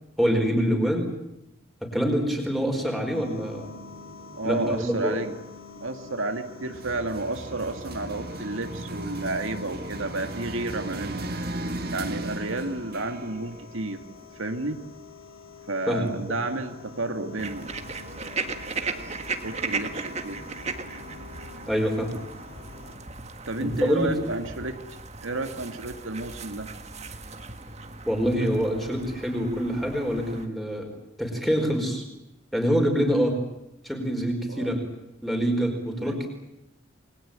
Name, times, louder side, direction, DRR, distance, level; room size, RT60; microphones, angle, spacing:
voice 1, 0.2-1.1 1.8-3.7 4.4-5.1 15.9-16.4 21.7-22.1 23.6-24.1 28.1-30.9 31.2-32.0 32.5-33.4 33.8-34.8 35.2-36.3, equal, ahead, 3 dB, 4.7 m, -25 dB
sound 1, 3.1-23.0, left 4 dB, 80° left, 7.4 m, -46 dB
voice 2, 4.3-5.3 5.8-11.3 11.9-14.0 14.3-14.8 15.7-17.7 18.8-19.0 19.4-20.4 23.5-24.8 25.2-26.7 34.5-34.7 36.0-36.2, right 2 dB, 80° right, 6 dB, 2.2 m, -31 dB
sound 2, 6.7-14.7, right 1 dB, 50° right, 2.0 m, -36 dB
sound 3, 17.4-30.5, right 4 dB, 35° right, 1.8 m, -37 dB
28.5 x 21.0 x 8.9 m, 0.90 s
head